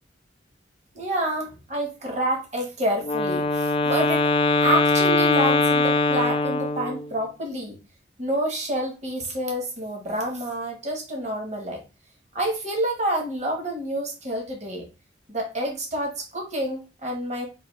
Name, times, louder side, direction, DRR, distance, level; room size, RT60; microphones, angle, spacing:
voice 1, 0.9-4.2 4.6-7.8 8.2-11.8 12.3-14.9 15.3-17.5, right 1 dB, 40° right, 1 dB, 1.1 m, -28 dB
Wind instrument woodwind instrument, 3.0-7.1, left 3 dB, 30° left, 0.3 m, -22 dB
4.9 x 2.6 x 3.1 m, 0.29 s
head